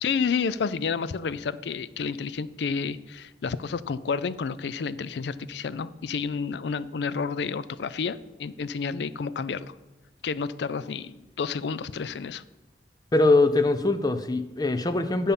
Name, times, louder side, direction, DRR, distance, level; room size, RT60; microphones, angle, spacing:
voice 1, 0.0-9.7 10.2-12.4, left 5 dB, 75° left, 16 dB, 0.4 m, -30 dB
voice 2, 13.1-15.3, left 2 dB, 20° left, 11 dB, 0.5 m, -22 dB
10.5 x 5.5 x 5.4 m, 1.1 s
head